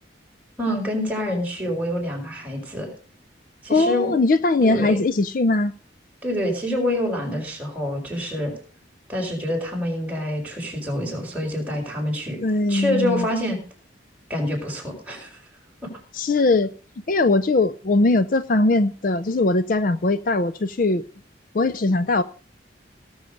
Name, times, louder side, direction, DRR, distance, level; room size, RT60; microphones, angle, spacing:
voice 1, 0.6-2.9 3.6-4.1 4.6-5.0 6.2-8.5 9.1-12.4 12.7-13.6 14.3-15.3, left 1 dB, 10° right, -2 dB, 4.9 m, -26 dB
voice 2, 3.7-5.7 12.4-13.3 16.1-16.7 17.1-21.0 21.5-22.2, left 2 dB, 45° left, 14 dB, 0.5 m, -20 dB
18.0 x 7.2 x 5.1 m, 0.41 s
head